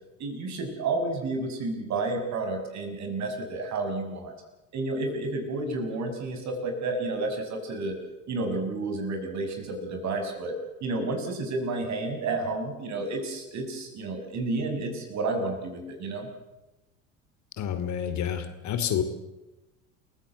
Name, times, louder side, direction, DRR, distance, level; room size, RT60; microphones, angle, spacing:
voice 1, 0.2-4.3 4.7-7.9 8.3-10.5 10.8-16.3, right 2 dB, 45° right, 4 dB, 6.5 m, -31 dB
voice 2, 17.6-19.0, left 9 dB, 45° left, 10 dB, 2.8 m, -29 dB
28.5 x 16.0 x 8.0 m, 1.0 s
hypercardioid pair, 75°, 39 cm